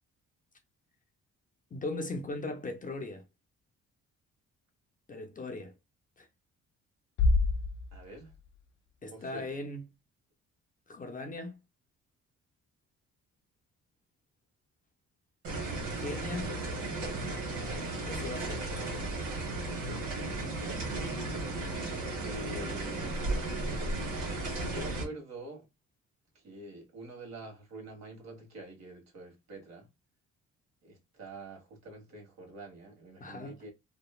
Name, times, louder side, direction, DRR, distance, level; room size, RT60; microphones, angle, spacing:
voice 1, 1.7-3.2 5.1-5.7 6.2-6.3 9.0-9.8 10.9-11.6 16.0-16.6 18.0-18.7 33.2-33.5, left 2 dB, 25° left, 0.5 m, -38 dB
Bass drum, 7.2-8.9, left 3 dB, 85° left, 0.5 m, -28 dB
voice 2, 7.9-8.3 9.1-9.5 22.2-23.7 24.7-25.6 26.4-29.9 30.8-33.7, right 2 dB, 60° right, 1.4 m, -46 dB
sound 1, 15.4-25.1, right 2 dB, 90° right, 1.1 m, -35 dB
3.0 x 2.1 x 2.3 m
cardioid pair, 90°, 30 cm